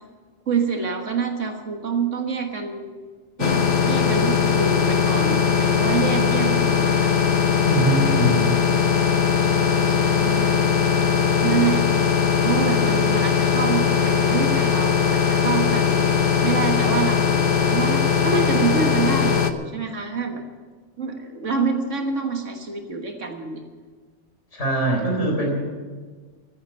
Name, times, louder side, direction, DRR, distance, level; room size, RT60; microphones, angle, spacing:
voice 1, 0.5-2.9 3.4-7.1 9.4-10.6 11.4-11.8 12.4-16.0 16.4-20.4 21.0-23.6, right 5 dB, 70° right, 4 dB, 1.8 m, -27 dB
sound 1, 3.4-19.5, left 6 dB, 50° left, 0.9 m, -20 dB
voice 2, 7.6-8.4 24.5-25.6, right 1 dB, 65° left, 0 dB, 4.2 m, -22 dB
14.0 x 9.5 x 8.8 m, 1.5 s
omnidirectional pair, 1.3 m